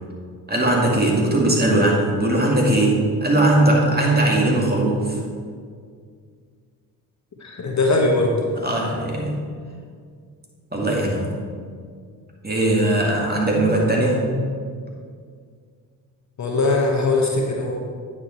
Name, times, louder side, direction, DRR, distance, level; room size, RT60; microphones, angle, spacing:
voice 1, 0.5-5.2 8.6-9.4 10.7-11.3 12.4-14.3, right 1 dB, 20° right, -2 dB, 2.1 m, -19 dB
voice 2, 7.4-8.3 16.4-17.8, left 2 dB, 35° left, 0 dB, 1.1 m, -20 dB
9.1 x 4.9 x 4.4 m, 2.1 s
hypercardioid pair, 45°, 49 cm